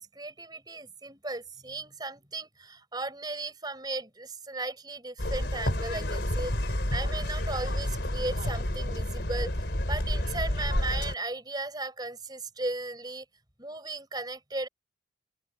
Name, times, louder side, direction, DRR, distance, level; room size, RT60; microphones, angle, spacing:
voice 1, 0.0-9.5 9.8-13.3 13.6-14.7, right 2 dB, 20° right, 5.5 m, -36 dB
sound 1, 5.2-11.1, left 1 dB, 65° left, 3.6 m, -30 dB
head